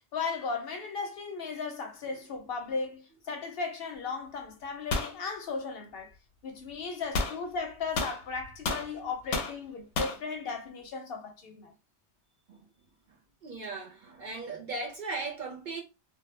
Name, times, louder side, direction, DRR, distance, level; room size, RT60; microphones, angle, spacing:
voice 1, 0.1-6.1 6.4-11.7, left 4 dB, 65° left, 0.7 m, -36 dB
sound 1, 4.9-5.2 7.1-7.4 8.0-8.9 9.3-9.6 10.0-10.2, left 3 dB, 90° left, 0.9 m, -30 dB
voice 2, 13.4-15.8, right 3 dB, 60° right, 0.5 m, -37 dB
2.1 x 2.0 x 3.0 m
omnidirectional pair, 1.2 m